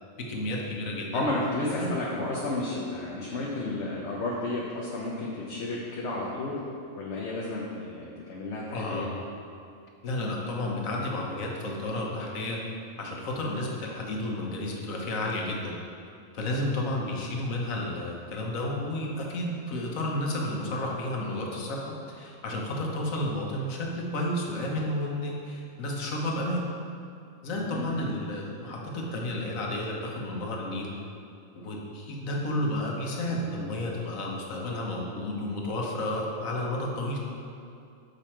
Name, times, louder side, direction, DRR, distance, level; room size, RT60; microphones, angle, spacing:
voice 1, 0.3-1.3 1.8-2.0 8.7-9.1 10.0-12.6 13.0-15.8 16.3-26.6 27.4-30.9 31.5-37.2, left 1 dB, 80° left, -1 dB, 1.4 m, -31 dB
voice 2, 1.1-6.6 7.0-9.1 27.5-28.0, left 2 dB, 60° left, -4 dB, 1.1 m, -32 dB
6.8 x 5.2 x 4.4 m, 2.5 s
omnidirectional pair, 1.4 m